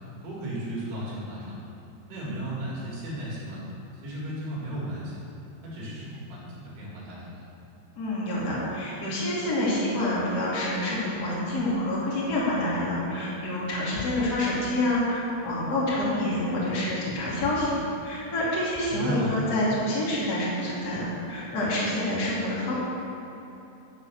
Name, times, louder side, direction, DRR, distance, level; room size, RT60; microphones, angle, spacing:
voice 1, 0.2-1.5 2.1-3.6 4.0-5.2 5.6-7.4 18.9-19.3, right 1 dB, 60° right, -6 dB, 3.8 m, -34 dB
voice 2, 8.0-17.7 18.0-22.7, left 1 dB, 30° left, -7 dB, 1.8 m, -27 dB
10.0 x 6.9 x 6.9 m, 3.0 s
omnidirectional pair, 5.7 m